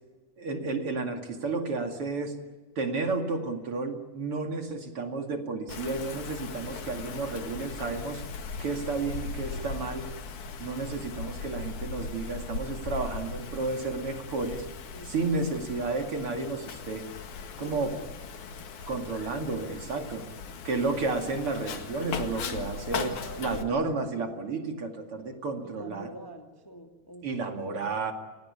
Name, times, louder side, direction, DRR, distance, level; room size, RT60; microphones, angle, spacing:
voice 1, 0.4-2.3 2.8-8.2 8.6-10.1 10.6-14.7 15.0-17.1 17.6-17.9 18.9-20.3 20.6-26.1 27.2-28.1, right 3 dB, 50° right, 4 dB, 3.1 m, -32 dB
Wind, 5.7-23.6, left 5 dB, 75° left, 3.3 m, -39 dB
voice 2, 14.9-15.9 17.6-18.1 20.3-20.6 22.4-23.7 25.6-27.9, right 1 dB, 10° left, 3 dB, 2.0 m, -46 dB
29.0 x 19.0 x 9.9 m, 1.3 s
omnidirectional pair, 3.4 m